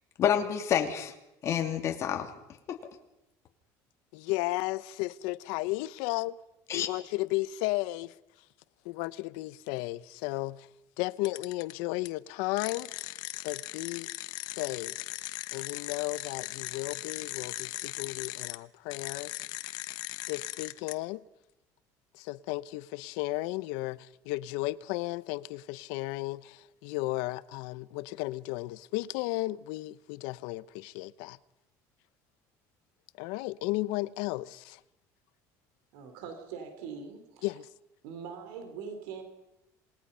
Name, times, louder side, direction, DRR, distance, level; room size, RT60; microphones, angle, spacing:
voice 1, 0.2-1.1 1.4-2.3 2.7-2.8 6.7-6.9, left 9 dB, 40° left, 2.8 m, -28 dB
voice 2, 4.1-6.4 6.7-8.1 8.8-10.7 11.0-13.2 13.4-14.1 14.6-14.9 15.5-19.4 20.3-21.2 22.1-31.4 33.2-34.8 37.4-37.7, left 19 dB, 90° left, 0.8 m, -34 dB
sound 1, 11.2-11.7 12.1-12.2 12.6-18.6 18.9-20.9, left 18 dB, 70° left, 1.1 m, -39 dB
voice 3, 35.9-37.5 38.0-39.2, right 6 dB, 90° right, 4.0 m, -42 dB
27.5 x 21.0 x 5.6 m
cardioid pair, 145°, 7 cm